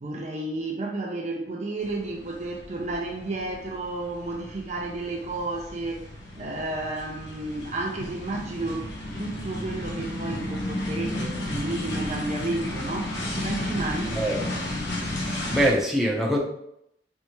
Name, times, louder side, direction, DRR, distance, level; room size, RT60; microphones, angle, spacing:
voice 1, 0.0-14.2, right 2 dB, 40° right, 1 dB, 0.5 m, -32 dB
sound 1, 1.8-15.7, left 1 dB, 90° left, 1.1 m, -33 dB
voice 2, 14.2-14.6 15.0-16.4, equal, ahead, -4 dB, 0.7 m, -25 dB
4.4 x 3.3 x 3.0 m, 0.75 s
head